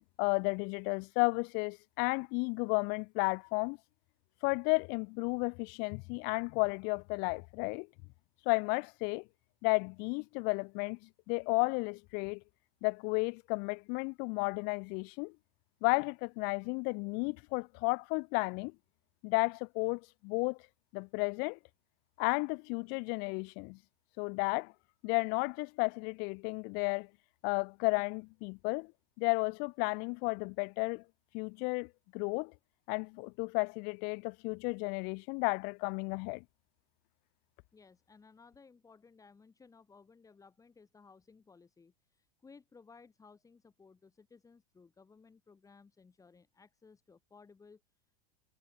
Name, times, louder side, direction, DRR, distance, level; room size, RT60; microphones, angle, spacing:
voice 1, 0.0-3.8 4.4-7.9 8.5-9.2 9.6-12.4 12.8-15.3 15.8-18.7 19.2-20.6 20.9-21.6 22.2-23.8 24.2-24.7 25.0-27.1 27.4-28.9 29.2-31.0 31.3-32.5 32.9-36.4, left 34 dB, 55° left, 0.7 m, -33 dB
voice 2, 37.7-47.8, left 4 dB, 15° left, 7.0 m, -59 dB
hypercardioid pair, 105°, 20 cm